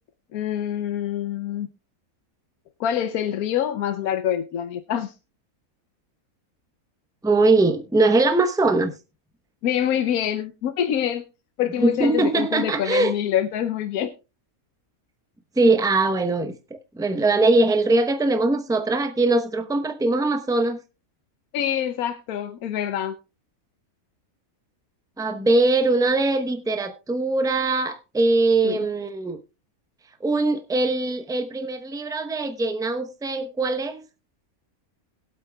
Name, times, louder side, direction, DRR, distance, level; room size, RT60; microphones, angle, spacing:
voice 1, 0.3-1.7 2.8-5.1 9.6-11.2 11.6-14.1 21.5-23.2 28.6-28.9, left 10 dB, 85° left, 1.2 m, -25 dB
voice 2, 7.2-8.9 11.8-13.1 15.6-20.8 25.2-29.4 30.2-34.0, right 2 dB, 5° right, 0.6 m, -21 dB
21.0 x 8.1 x 2.3 m
omnidirectional pair, 1.5 m